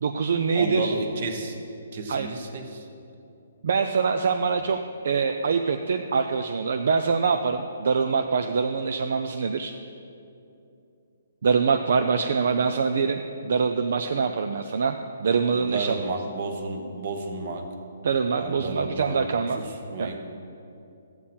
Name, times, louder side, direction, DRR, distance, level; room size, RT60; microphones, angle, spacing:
voice 1, 0.0-0.9 2.1-2.3 3.6-4.8 5.0-9.7 11.4-16.0 18.0-19.6 20.0-20.2, right 5 dB, 55° right, 6 dB, 0.5 m, -24 dB
voice 2, 0.5-1.5 1.9-2.9 15.5-17.7 18.4-19.2 19.6-20.2, right 3 dB, 40° right, 5 dB, 1.1 m, -32 dB
13.0 x 8.7 x 4.3 m, 2.7 s
hypercardioid pair, 170°, 0 cm